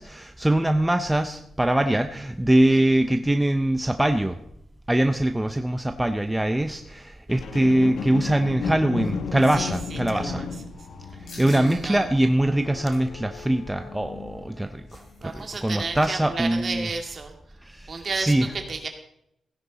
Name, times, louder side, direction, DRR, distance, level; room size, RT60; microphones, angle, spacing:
voice 1, 0.0-4.4 4.9-10.4 11.1-16.9 17.6-18.5, right 1 dB, 5° right, 7 dB, 0.6 m, -23 dB
sound 1, 7.3-14.7 15.3-15.4, left 5 dB, 85° left, 1.2 m, -34 dB
voice 2, 10.1-10.5 11.6-12.1 15.2-17.3 17.9-18.9, right 4 dB, 40° right, 4 dB, 2.2 m, -32 dB
sound 2, 11.3-11.8 12.2-12.3 12.7-13.1 14.4-15.6 15.9-16.0 16.3-16.6, left 2 dB, 60° left, 6.0 m, -47 dB
16.0 x 10.5 x 4.1 m, 0.78 s
wide cardioid pair, 160°, 0 cm